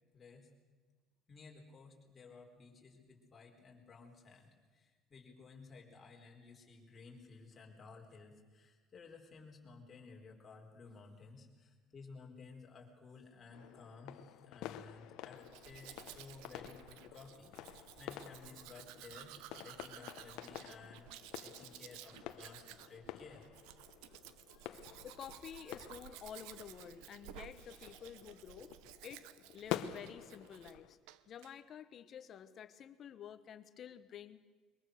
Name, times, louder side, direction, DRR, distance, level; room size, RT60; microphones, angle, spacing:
voice 1, 0.1-0.5 1.3-21.1 21.4-23.4 24.6-24.9, left 4 dB, 25° left, 0 dB, 4.2 m, -56 dB
sound 1, 13.5-31.0, left 12 dB, 70° left, 1.1 m, -49 dB
Domestic sounds home sounds, 15.4-30.8 31.1-31.5, right 13 dB, 85° right, 0.9 m, -55 dB
voice 2, 25.0-28.7 29.0-29.3 29.5-31.0 31.3-34.4, left 9 dB, 40° left, 13 dB, 1.2 m, -50 dB
22.5 x 22.0 x 6.6 m, 1.4 s
cardioid pair, 130°, 0 cm